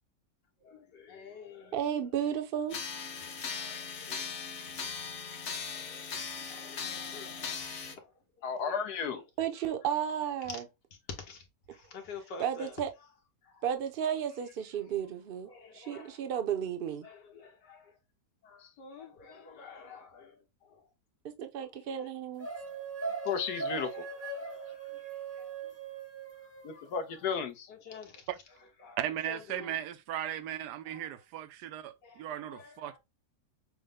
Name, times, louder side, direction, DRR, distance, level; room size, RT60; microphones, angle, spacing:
voice 1, 0.6-1.8 3.2-4.3 5.7-8.8 11.1-12.8 13.4-13.6 15.5-16.2 17.0-18.0 18.4-20.9 21.6-22.1 22.5-22.6 23.1-23.2 23.8-25.8 26.4-26.5 27.1-27.3 27.7-28.3 28.8-29.0 29.3-29.8 30.4-30.6 30.9-31.1 32.0-33.0, left 5 dB, 90° left, 1.9 m, -50 dB
voice 2, 1.7-2.8 9.4-10.6 12.4-12.9 13.6-17.1 21.2-22.5, right 9 dB, 50° right, 0.7 m, -33 dB
sound 1, 2.7-7.9, left 6 dB, 50° left, 1.1 m, -39 dB
voice 3, 8.4-9.2 18.6-18.7 23.2-24.0 26.6-27.7, left 6 dB, 70° left, 1.4 m, -33 dB
sound 2, 22.4-26.9, right 4 dB, 10° right, 0.7 m, -39 dB
voice 4, 29.0-33.0, right 11 dB, 80° right, 1.2 m, -37 dB
6.3 x 2.2 x 3.6 m
omnidirectional pair, 1.8 m